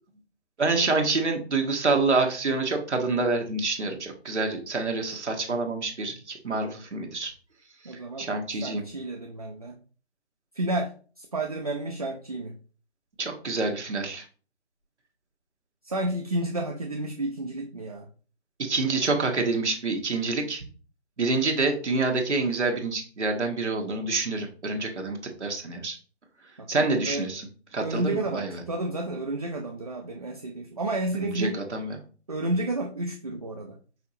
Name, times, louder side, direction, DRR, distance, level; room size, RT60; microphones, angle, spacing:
voice 1, 0.6-7.3 7.9-8.8 13.2-14.2 18.6-20.6 21.2-26.0 26.7-27.4 27.7-28.6 31.1-32.0, right 3 dB, 90° right, 3 dB, 1.2 m, -27 dB
voice 2, 7.8-9.7 10.5-12.6 15.8-18.1 26.6-27.3 27.8-31.6 32.3-33.8, right 2 dB, 35° right, 2 dB, 0.4 m, -31 dB
5.7 x 2.9 x 2.7 m, 0.38 s
figure-of-eight pair, 160°, 34 cm